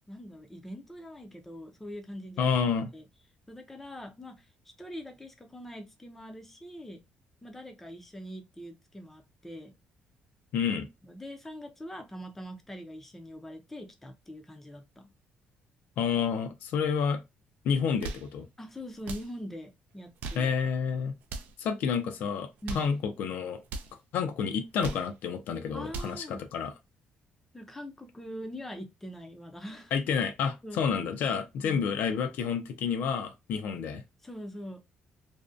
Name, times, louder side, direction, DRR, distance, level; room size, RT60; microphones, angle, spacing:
voice 1, 0.1-2.5 2.9-3.1 3.5-4.5 4.8-7.0 7.4-9.7 11.0-15.1 18.6-20.5 22.6-22.9 25.7-26.4 27.5-29.9 30.6-30.8 31.6-31.8 34.2-34.8, equal, 10° left, 0.4 m, -43 dB
voice 2, 2.4-2.9 10.5-10.9 16.0-17.2 17.6-18.4 20.4-21.1 21.6-22.5 22.7-23.6 24.1-26.7 29.9-34.0, left 6 dB, 70° left, 0.4 m, -29 dB
sound 1, 17.8-18.3 19.0-19.3 20.0-20.5 21.2-21.6 22.4-22.9 23.6-23.9 24.6-25.1 25.7-26.2, right 3 dB, 75° right, 0.4 m, -39 dB
2.5 x 2.1 x 2.4 m
cardioid pair, 155°, 3 cm